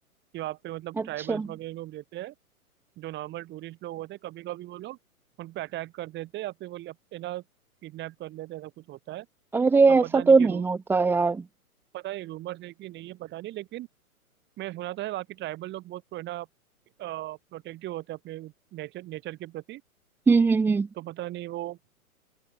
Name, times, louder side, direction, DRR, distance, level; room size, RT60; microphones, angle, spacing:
voice 1, 0.3-2.3 3.0-5.0 5.4-7.4 7.8-9.3 9.9-10.7 11.9-13.9 14.6-16.5 17.0-19.8 21.0-21.8, right 16 dB, 25° right, 7.0 m, -37 dB
voice 2, 9.5-11.4 20.3-20.9, right 4 dB, 5° right, 0.8 m, -20 dB
figure-of-eight pair, 125°, 44 cm